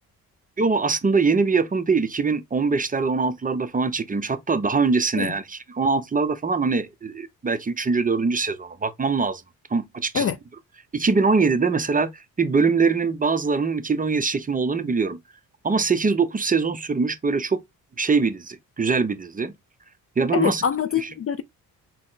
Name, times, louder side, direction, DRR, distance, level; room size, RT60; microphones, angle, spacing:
voice 1, 0.6-9.4 9.7-10.3 10.9-15.2 15.6-17.6 18.0-19.5 20.2-20.6 21.0-21.1, right 4 dB, 25° right, 0.6 m, -23 dB
voice 2, 20.3-21.4, left 8 dB, 40° left, 0.5 m, -24 dB
4.2 x 2.0 x 3.9 m
cardioid pair, 80°, 36 cm